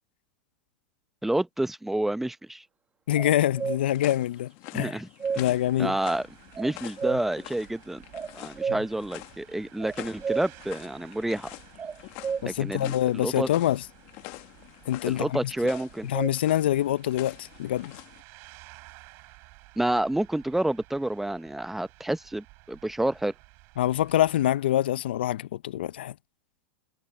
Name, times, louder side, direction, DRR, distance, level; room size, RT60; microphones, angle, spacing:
voice 1, 1.2-2.6 4.7-5.1 5.3-5.4 5.8-6.3 6.6-8.0 8.4-11.5 12.5-13.5 15.1-16.1 19.8-23.3, right 1 dB, 5° right, 0.9 m, -29 dB
voice 2, 3.1-5.0 5.4-6.0 12.4-13.8 14.9-15.4 16.0-17.9 23.8-26.1, left 12 dB, 75° left, 0.8 m, -25 dB
sound 1, 3.1-18.2, left 23 dB, 50° left, 1.5 m, -46 dB
sound 2, 3.2-3.8 4.8-5.4 6.5-7.3 8.1-8.9 9.8-10.5 11.8-12.4 15.7-16.3, right 6 dB, 20° right, 1.8 m, -31 dB
sound 3, 5.2-24.5, right 26 dB, 50° right, 6.0 m, -54 dB
hypercardioid pair, 110°, 6 cm